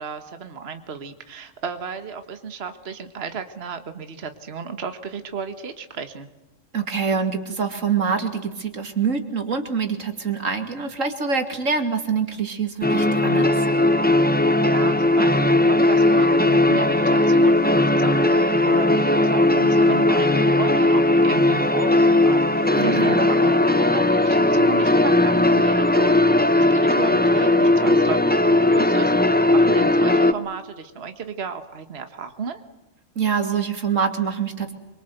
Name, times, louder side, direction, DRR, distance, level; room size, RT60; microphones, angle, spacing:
voice 1, 0.0-6.3 14.7-32.6, right 5 dB, 55° right, 8 dB, 1.6 m, -34 dB
voice 2, 6.7-13.6 22.7-23.2 33.2-34.7, right 6 dB, 90° right, 6 dB, 2.9 m, -25 dB
sound 1, 12.8-30.3, left 1 dB, 10° left, 0.9 m, -18 dB
26.5 x 23.5 x 8.0 m, 1.0 s
omnidirectional pair, 1.3 m